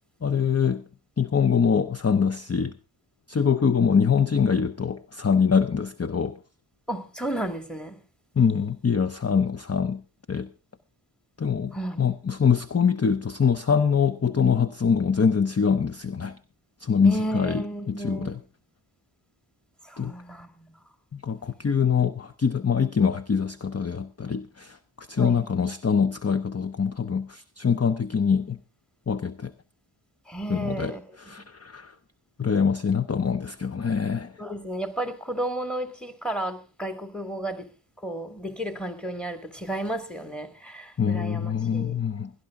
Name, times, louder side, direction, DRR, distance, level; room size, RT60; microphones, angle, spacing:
voice 1, 0.2-0.8 1.2-2.8 3.3-6.4 8.4-10.0 10.3-10.5 11.4-16.4 16.8-18.4 20.0-20.1 21.1-28.6 29.1-29.5 30.5-32.0 32.4-34.3 41.0-42.3, left 6 dB, 30° left, 0.6 m, -24 dB
voice 2, 6.9-8.0 11.7-12.0 17.0-18.4 19.8-20.8 25.2-25.5 30.3-31.5 34.4-37.7 38.0-42.0, right 1 dB, ahead, 1.8 m, -33 dB
17.5 x 11.5 x 3.6 m
wide cardioid pair, 45°, 48 cm